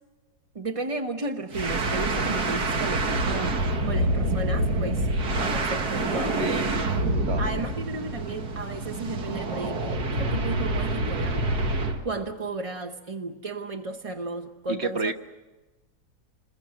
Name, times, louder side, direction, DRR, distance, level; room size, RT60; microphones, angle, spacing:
voice 1, 0.5-5.1 5.4-6.9 7.4-11.4 12.0-15.1, right 3 dB, 25° right, 4 dB, 0.9 m, -34 dB
sound 1, 1.5-12.0, right 2 dB, 80° right, 2.3 m, -27 dB
voice 2, 6.4-6.8 7.3-7.7 14.7-15.1, right 3 dB, 45° right, 7 dB, 1.4 m, -30 dB
27.0 x 21.5 x 7.6 m, 1.2 s
omnidirectional pair, 1.7 m